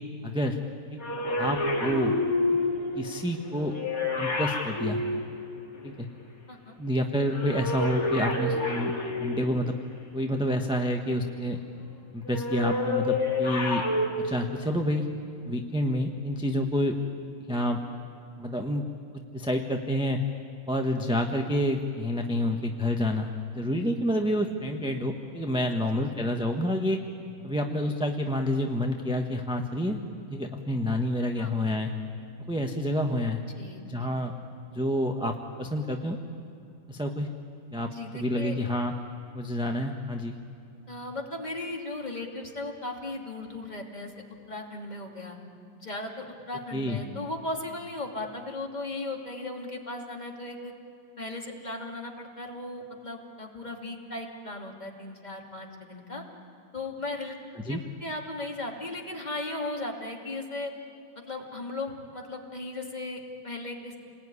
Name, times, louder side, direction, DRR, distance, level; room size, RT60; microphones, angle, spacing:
voice 1, 0.2-0.6 0.9-1.0 1.4-2.2 2.9-3.7 4.2-5.0 5.8-6.1 6.8-8.9 9.2-9.7 10.1-11.6 12.1-13.8 14.2-17.0 17.5-17.8 18.4-18.8 19.3-20.2 20.7-23.3 23.5-27.0 27.4-30.0 30.3-31.9 32.5-33.4 33.9-34.3 34.7-36.2 36.9-37.3 37.7-38.9 39.3-40.3 46.7-47.0 57.7-57.8, left 1 dB, 5° right, 2 dB, 0.9 m, -28 dB
sound 1, 1.0-6.0 7.2-9.8 12.2-14.1, left 2 dB, 45° left, 3.1 m, -29 dB
voice 2, 25.6-26.1 31.4-31.5 33.6-34.1 37.9-38.6 40.9-44.1 44.5-45.4 45.8-50.7 51.2-56.2 56.7-57.4 57.7-60.7 61.3-64.0, left 2 dB, 20° left, 0 dB, 2.7 m, -37 dB
28.5 x 20.5 x 9.8 m, 2.5 s
omnidirectional pair, 2.1 m